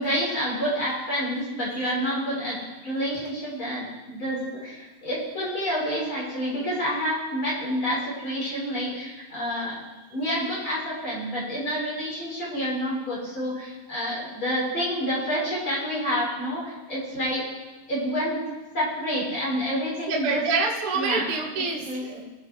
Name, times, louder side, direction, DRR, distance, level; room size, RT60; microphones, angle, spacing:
voice 1, 0.0-2.6 2.8-9.8 10.1-17.4 17.9-18.4 18.7-20.4 20.9-21.3 21.8-22.0, equal, 30° left, -6 dB, 6.4 m, -28 dB
voice 2, 20.1-22.3, right 4 dB, 55° right, 0 dB, 1.7 m, -27 dB
23.0 x 8.4 x 5.2 m, 1.1 s
omnidirectional pair, 4.7 m